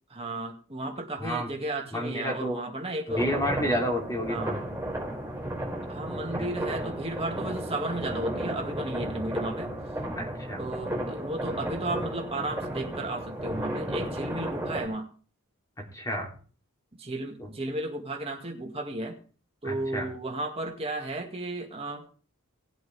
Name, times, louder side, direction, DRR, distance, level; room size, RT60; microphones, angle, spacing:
voice 1, 0.1-3.3 4.3-4.5 5.9-9.7 10.6-15.1 17.0-19.2 19.6-22.1, right 2 dB, 25° right, 1 dB, 2.2 m, -34 dB
voice 2, 1.2-1.5 1.9-2.6 3.2-4.6 6.4-6.5 10.2-10.6 15.9-16.3 17.4-17.5 19.6-20.0, equal, 15° left, 0 dB, 3.3 m, -30 dB
sound 1, 3.1-14.8, right 1 dB, 10° right, 4.3 m, -34 dB
19.5 x 8.1 x 3.5 m, 0.39 s
head